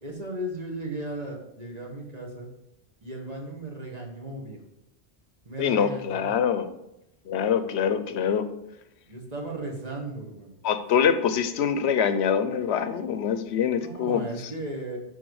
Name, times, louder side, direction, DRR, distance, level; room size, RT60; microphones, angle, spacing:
voice 1, 0.0-2.5 3.0-4.6 5.4-6.4 9.1-10.6 13.8-15.0, right 1 dB, 40° right, -1 dB, 1.6 m, -36 dB
voice 2, 5.6-6.7 7.3-8.5 10.6-14.2, left 7 dB, 85° left, 11 dB, 0.9 m, -24 dB
10.0 x 4.1 x 4.7 m, 0.87 s
omnidirectional pair, 1.1 m